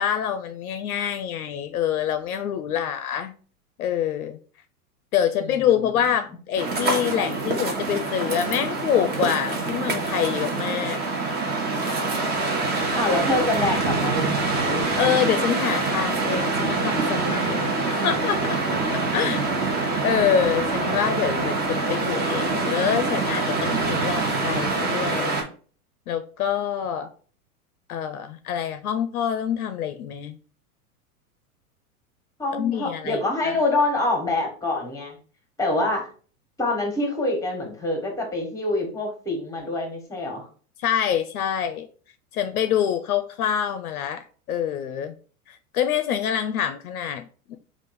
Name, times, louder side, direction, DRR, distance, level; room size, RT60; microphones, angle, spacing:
voice 1, 0.0-3.3 3.8-4.4 5.1-11.0 15.0-18.6 19.1-19.4 19.8-25.4 26.1-27.1 27.9-30.4 32.6-33.5 40.8-41.9 42.3-45.1 45.5-47.6, left 9 dB, 75° left, 0.5 m, -26 dB
voice 2, 5.4-5.9 12.9-14.9 19.2-19.4 32.4-35.2 35.6-36.1 36.6-40.5, left 2 dB, 5° left, 1.2 m, -26 dB
sound 1, 6.6-25.4, right 3 dB, 20° right, 0.9 m, -25 dB
3.5 x 2.5 x 4.0 m
hypercardioid pair, 95°, 44 cm